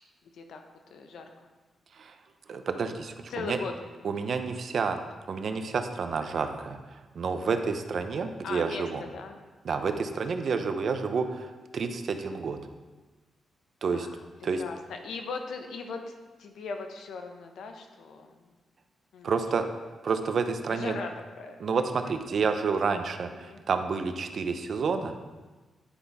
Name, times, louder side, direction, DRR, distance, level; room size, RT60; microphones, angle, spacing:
voice 1, 0.9-1.2 3.3-3.9 8.4-9.4 9.7-10.0 13.9-14.2 14.6-16.0 16.4-18.3 19.1-19.3 20.7-21.1 21.4-21.6 23.3-23.6, left 4 dB, 80° left, 5 dB, 0.8 m, -38 dB
voice 2, 2.5-3.6 4.0-5.0 5.3-6.8 7.1-9.0 9.6-12.6 13.8-14.1 14.4-14.6 19.2-19.6 20.0-21.0 21.6-25.1, right 5 dB, 60° right, 8 dB, 0.7 m, -29 dB
10.0 x 5.5 x 3.5 m, 1.2 s
cardioid pair, 80°, 0 cm